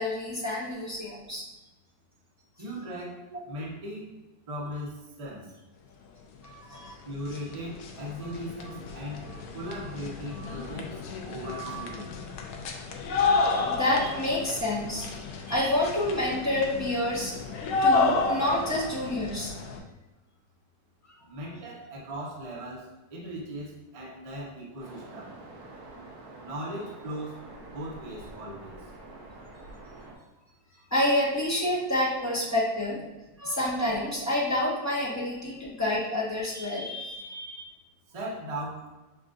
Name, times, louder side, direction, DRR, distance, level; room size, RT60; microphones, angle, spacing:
voice 1, 0.0-1.4 6.4-7.0 10.3-10.5 11.4-12.0 13.4-15.1 15.5-17.3 17.8-19.5 30.9-33.0 33.4-37.7, left 1 dB, 15° left, -7 dB, 0.6 m, -28 dB
voice 2, 2.6-4.1 4.5-5.5 7.0-9.3 9.5-11.0 11.2-12.1 21.2-25.3 26.3-27.4 27.7-28.8 38.1-38.9, equal, 35° right, -4 dB, 0.5 m, -38 dB
sound 1, 6.7-6.8 7.1-19.8, left 3 dB, 70° left, 0.9 m, -31 dB
Waves surf, 24.8-30.1, right 2 dB, 65° right, 1.2 m, -46 dB
6.9 x 2.4 x 2.5 m, 1.1 s
omnidirectional pair, 2.0 m